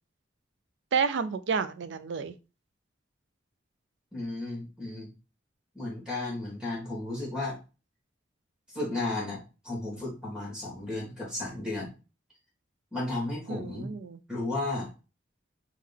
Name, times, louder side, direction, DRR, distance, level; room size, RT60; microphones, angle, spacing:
voice 1, 0.9-2.4 13.5-14.2, right 5 dB, 65° right, 12 dB, 0.4 m, -30 dB
voice 2, 4.1-5.1 5.8-7.6 8.7-11.9 12.9-13.9 14.3-14.9, left 2 dB, 5° right, -4 dB, 1.9 m, -34 dB
3.4 x 3.2 x 3.4 m, 0.31 s
head